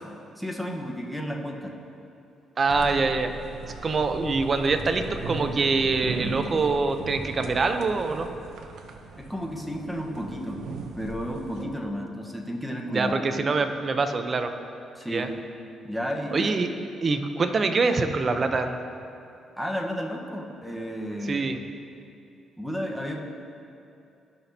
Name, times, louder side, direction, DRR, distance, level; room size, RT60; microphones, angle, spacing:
voice 1, 0.4-1.7 9.2-10.6 11.0-13.1 15.0-15.3 15.8-16.5 19.6-21.5 22.6-23.2, equal, ahead, 0 dB, 1.2 m, -32 dB
voice 2, 2.6-3.3 3.8-8.3 12.9-14.5 15.1-15.3 16.3-16.7 17.0-18.8 21.3-21.6, right 4 dB, 40° right, 7 dB, 0.7 m, -24 dB
sound 1, 2.7-11.6, right 4 dB, 75° right, 0.8 m, -38 dB
16.5 x 6.1 x 2.8 m, 2.6 s
cardioid pair, 90°, 0 cm